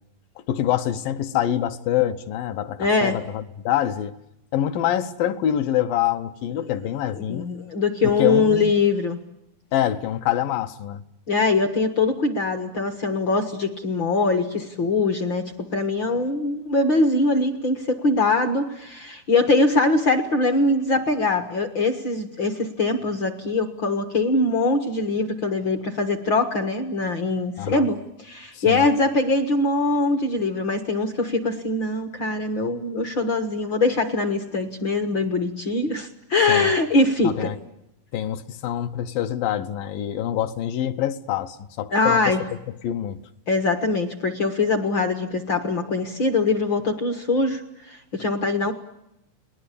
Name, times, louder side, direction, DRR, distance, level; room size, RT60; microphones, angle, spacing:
voice 1, 0.5-4.1 4.5-7.5 8.2-8.8 9.7-11.0 27.6-27.9 28.5-28.9 36.5-36.7 37.2-37.6 38.1-42.3 42.8-43.2, left 11 dB, 70° left, 2.7 m, -25 dB
voice 2, 2.8-3.1 7.3-9.2 11.3-37.5 41.9-42.4 43.5-47.6 47.9-48.7, left 3 dB, 55° left, 1.3 m, -22 dB
29.0 x 20.0 x 8.5 m
omnidirectional pair, 4.4 m